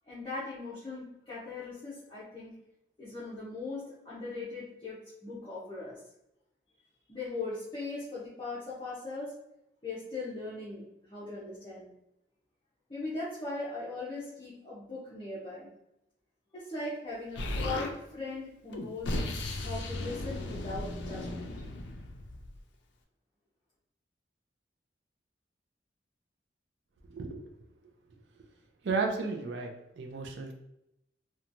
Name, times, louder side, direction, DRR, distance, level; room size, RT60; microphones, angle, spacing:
voice 1, 0.1-2.6 3.0-6.0 7.1-9.3 9.8-11.9 12.9-15.7 16.5-19.2 19.6-21.5, left 3 dB, 25° left, -10 dB, 0.7 m, -39 dB
Explosion, 17.4-17.9 18.7-22.6, left 1 dB, 80° left, 0.4 m, -36 dB
voice 2, 27.1-27.5 28.8-29.7 30.0-30.5, right 4 dB, 75° right, 3 dB, 0.4 m, -33 dB
2.9 x 2.2 x 2.5 m, 0.85 s
head